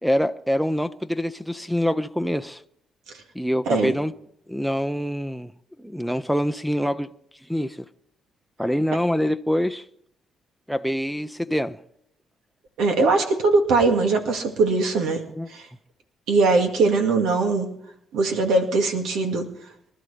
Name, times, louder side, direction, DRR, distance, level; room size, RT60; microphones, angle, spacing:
voice 1, 0.0-2.6 3.3-4.1 4.5-5.5 5.8-7.1 7.5-7.8 8.6-9.8 10.7-11.8 15.4-15.5, equal, ahead, 0.6 m, -25 dB
voice 2, 12.8-15.2 15.5-15.7 16.3-17.7 18.1-19.4, right 3 dB, 85° right, 2.1 m, -21 dB
25.0 x 12.5 x 3.4 m
cardioid pair, 90°, 0 cm